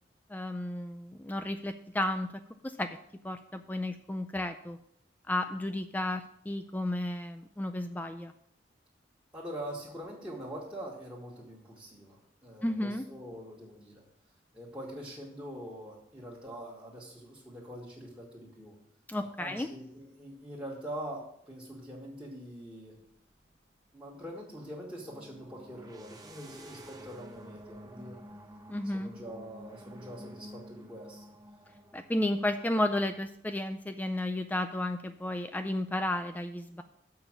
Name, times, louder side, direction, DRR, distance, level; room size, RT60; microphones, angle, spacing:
voice 1, 0.3-2.3 2.6-3.0 3.2-4.8 5.3-8.3 12.6-13.0 19.1-19.7 28.7-29.1 31.9-36.8, left 1 dB, 10° left, 8 dB, 0.4 m, -33 dB
voice 2, 9.3-14.0 14.5-18.8 19.2-23.0 23.9-28.2 28.9-31.2, equal, 5° right, -6 dB, 1.6 m, -44 dB
sound 1, 25.0-33.3, right 1 dB, 20° right, 0.9 m, -50 dB
7.0 x 5.6 x 7.3 m, 0.68 s
head